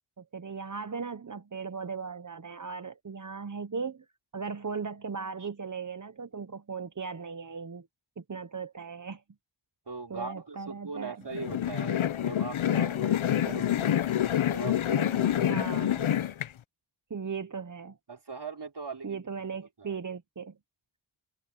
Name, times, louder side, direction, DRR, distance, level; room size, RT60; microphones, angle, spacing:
voice 1, 0.2-4.1 4.3-7.9 8.2-9.2 10.1-11.2 13.5-13.9 15.5-16.0 17.1-18.0 19.0-20.6, right 5 dB, 40° right, 1.0 m, -38 dB
voice 2, 9.9-13.9 14.5-15.7 18.1-19.2 19.8-20.0, right 4 dB, 55° right, 4.3 m, -40 dB
sound 1, 11.3-16.5, left 10 dB, 75° left, 0.8 m, -27 dB
cardioid pair, 55°, 49 cm